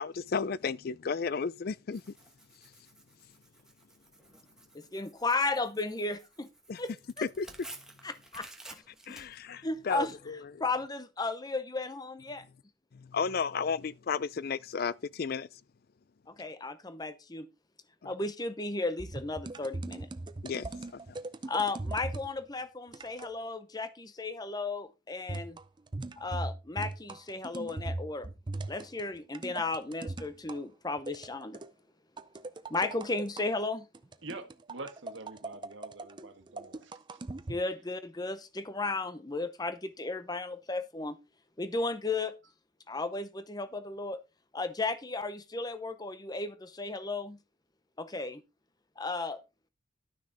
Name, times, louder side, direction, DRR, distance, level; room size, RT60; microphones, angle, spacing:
voice 1, 0.0-2.0 6.7-6.8 7.2-7.5 9.1-10.6 12.9-15.5 18.0-18.1 20.4-20.7 21.1-21.2, left 5 dB, 50° left, 0.4 m, -33 dB
Tearing, 1.9-10.1, right 2 dB, 5° right, 1.2 m, -53 dB
voice 2, 4.7-6.5 6.8-6.9 7.2-7.3 8.0-8.5 9.1-9.2 9.6-10.1 10.6-12.4 16.3-17.5 18.0-20.1 21.5-25.6 26.2-28.3 28.7-31.6 32.7-33.9 37.5-41.2 41.6-42.3 42.9-44.2 44.5-47.4 48.0-48.4 49.0-49.4, left 3 dB, 20° left, 0.7 m, -34 dB
sound 1, 19.0-22.3 22.9-23.4 25.3-30.6 31.1-31.7 32.2-33.5 33.9-37.6, right 2 dB, 25° right, 0.5 m, -39 dB
voice 3, 34.2-36.9, right 2 dB, 70° right, 1.4 m, -45 dB
12.0 x 6.2 x 4.0 m
head